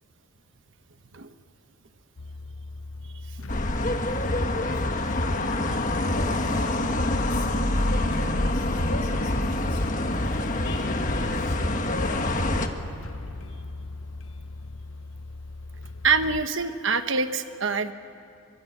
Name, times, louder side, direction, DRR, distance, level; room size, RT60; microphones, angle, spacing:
sound 1, 2.2-16.5, left 3 dB, 70° left, 0.8 m, -40 dB
sound 2, 3.5-12.7, left 1 dB, 35° left, 1.5 m, -26 dB
voice 1, 4.2-10.2 10.6-12.9, left 2 dB, 55° left, 2 dB, 5.6 m, -41 dB
sound 3, 7.8-13.3, equal, 35° right, 4.2 m, -46 dB
voice 2, 16.0-17.9, right 4 dB, 60° right, 9 dB, 1.2 m, -25 dB
24.0 x 23.5 x 9.4 m, 2.6 s
head